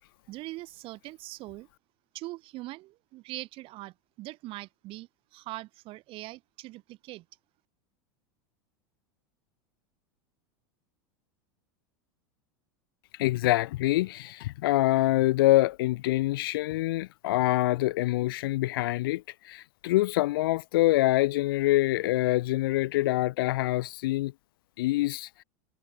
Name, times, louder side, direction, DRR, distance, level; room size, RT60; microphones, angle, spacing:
voice 1, 0.3-1.7 2.1-7.2, right 19 dB, 50° right, 3.2 m, -42 dB
voice 2, 13.2-24.3 24.8-25.3, left 17 dB, 75° left, 1.7 m, -25 dB
supercardioid pair, 120°, 12 cm